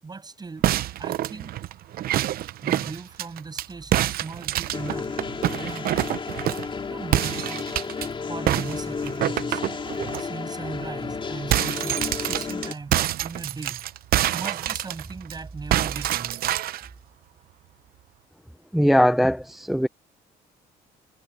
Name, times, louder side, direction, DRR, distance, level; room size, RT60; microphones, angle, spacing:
voice 1, 0.0-0.7 1.0-1.6 2.6-5.1 5.5-5.9 6.9-7.6 8.3-9.6 10.2-12.9 13.2-13.8 14.3-16.4, right 4 dB, 25° right, 7.3 m, -38 dB
sound 1, 0.6-3.7 3.9-6.7 7.1-8.1 8.5-10.2 10.6-10.8 11.1-15.3 15.7-16.9, right 13 dB, 60° right, 0.7 m, -26 dB
sound 2, 4.7-12.7, left 5 dB, 30° left, 3.8 m, -32 dB
voice 2, 18.7-19.9, equal, ahead, 0.6 m, -20 dB
cardioid pair, 110°, 17 cm